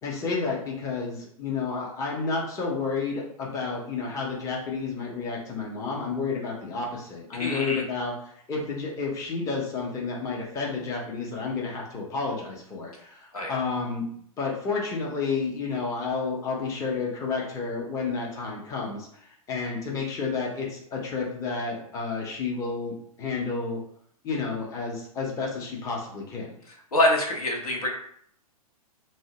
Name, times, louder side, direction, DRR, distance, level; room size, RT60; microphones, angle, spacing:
voice 1, 0.0-8.1 8.5-14.1 14.4-19.1 19.5-23.8 24.2-26.6, left 4 dB, 15° left, -3 dB, 0.6 m, -31 dB
voice 2, 7.3-7.8 13.3-13.6 26.9-27.9, left 1 dB, 80° left, 0 dB, 0.7 m, -25 dB
2.7 x 2.0 x 2.8 m, 0.65 s
figure-of-eight pair, 105°, 19 cm